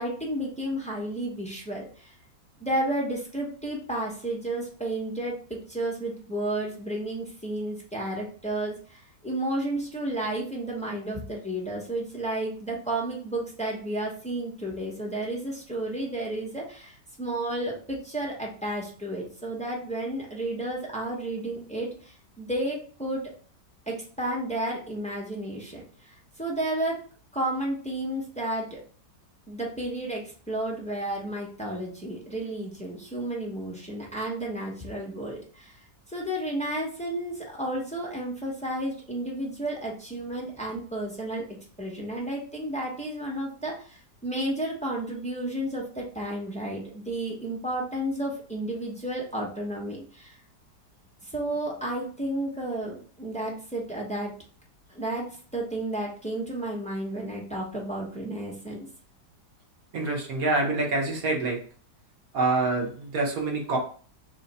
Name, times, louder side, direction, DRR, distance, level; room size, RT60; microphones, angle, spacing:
voice 1, 0.0-2.1 2.6-23.2 23.9-27.0 27.3-28.8 29.5-35.8 36.1-41.4 41.8-50.4 51.2-54.3 54.9-55.3 55.5-58.8, right 1 dB, 10° left, -3 dB, 0.4 m, -32 dB
voice 2, 59.9-61.6 62.3-63.8, right 3 dB, 60° right, 0 dB, 1.3 m, -26 dB
3.2 x 3.0 x 4.1 m, 0.43 s
omnidirectional pair, 1.9 m